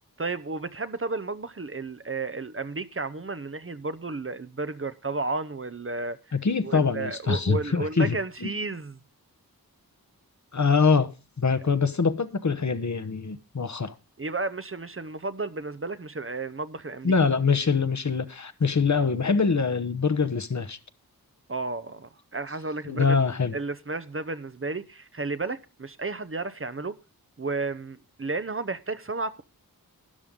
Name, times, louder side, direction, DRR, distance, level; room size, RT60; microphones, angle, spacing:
voice 1, 0.2-6.2 6.6-9.0 14.2-17.1 21.5-23.2 23.5-27.0 27.4-29.4, right 3 dB, 35° right, 0.8 m, -32 dB
voice 2, 6.4-8.5 10.5-11.1 11.4-13.9 17.0-20.8 22.9-23.6, left 5 dB, 50° left, 1.0 m, -24 dB
12.5 x 10.0 x 3.7 m
wide cardioid pair, 55°, 36 cm